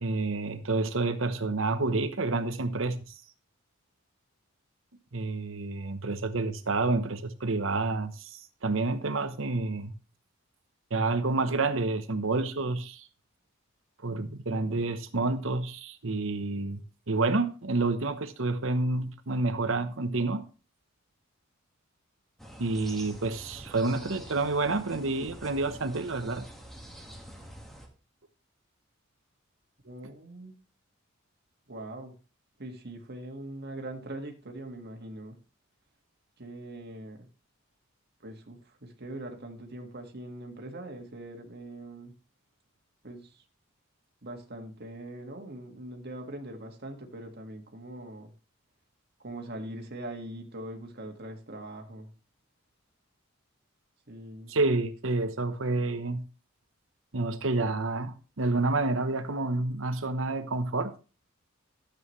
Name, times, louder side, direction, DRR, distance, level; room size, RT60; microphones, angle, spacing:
voice 1, 0.0-3.1 5.1-9.9 10.9-13.1 14.0-16.8 17.1-20.5 22.6-26.5 54.5-56.2 57.1-60.9, right 3 dB, 65° right, 1.0 m, -29 dB
sound 1, 22.4-27.9, equal, ahead, 1.7 m, -46 dB
voice 2, 29.8-30.5 31.7-32.1 32.6-35.4 36.4-37.3 38.2-42.1 43.0-43.4 44.2-48.3 49.2-52.1 54.1-54.5, right 1 dB, 50° right, 1.8 m, -42 dB
12.5 x 8.1 x 3.2 m
head